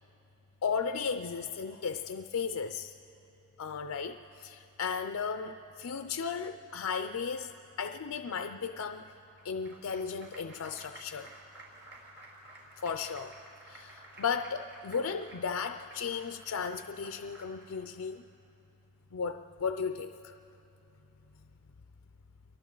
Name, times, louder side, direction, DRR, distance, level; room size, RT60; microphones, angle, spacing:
voice 1, 0.6-2.9 3.6-9.1 9.4-11.3 12.8-13.3 13.7-18.3 19.1-20.3, left 6 dB, 80° left, 7 dB, 0.5 m, -35 dB
Applause, 9.1-17.8, right 1 dB, 60° right, 4.7 m, -53 dB
29.0 x 23.0 x 3.9 m, 3.0 s
head